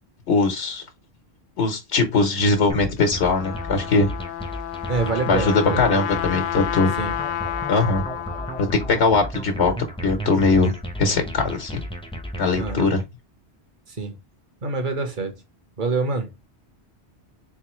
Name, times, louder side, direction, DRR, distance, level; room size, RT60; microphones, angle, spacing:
voice 1, 0.3-0.8 1.6-4.1 5.3-6.9 7.7-8.0 8.6-9.7 10.0-11.8 12.4-13.0, left 3 dB, 80° left, 1.4 m, -20 dB
sound 1, 2.7-13.0, equal, 5° left, 0.7 m, -33 dB
Trumpet, 3.0-8.9, left 10 dB, 60° left, 0.6 m, -30 dB
voice 2, 4.9-6.1 7.0-7.1 12.5-12.9 13.9-14.1 14.6-15.3 15.8-16.3, right 3 dB, 50° right, 1.2 m, -26 dB
4.0 x 3.6 x 3.0 m
omnidirectional pair, 1.1 m